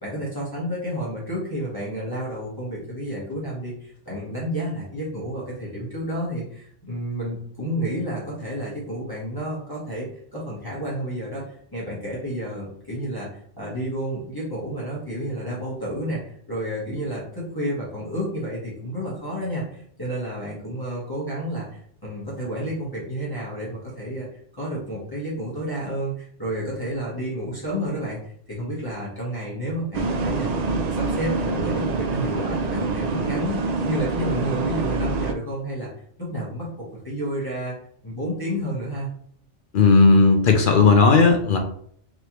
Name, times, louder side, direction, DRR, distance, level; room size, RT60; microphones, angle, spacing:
voice 1, 0.0-24.3 24.5-28.2 28.5-35.9 36.2-37.7 38.0-39.1, equal, 20° left, -7 dB, 1.2 m, -30 dB
sound 1, 29.9-35.3, right 3 dB, 75° right, 0.3 m, -26 dB
voice 2, 39.7-41.6, left 4 dB, 60° left, 4 dB, 0.6 m, -15 dB
3.9 x 3.3 x 2.9 m, 0.63 s
omnidirectional pair, 1.2 m